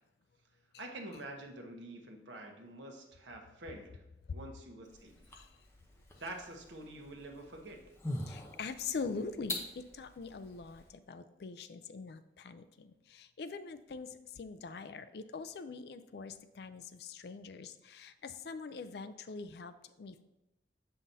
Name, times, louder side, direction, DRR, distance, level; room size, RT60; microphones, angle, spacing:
voice 1, 0.8-4.0 4.3-5.4 6.2-7.8, right 1 dB, 85° right, 2 dB, 1.0 m, -47 dB
sound 1, 4.8-10.9, left 1 dB, 15° left, 0.8 m, -45 dB
voice 2, 8.3-20.2, left 4 dB, 60° left, 11 dB, 0.4 m, -43 dB
7.3 x 5.7 x 2.7 m, 0.98 s
head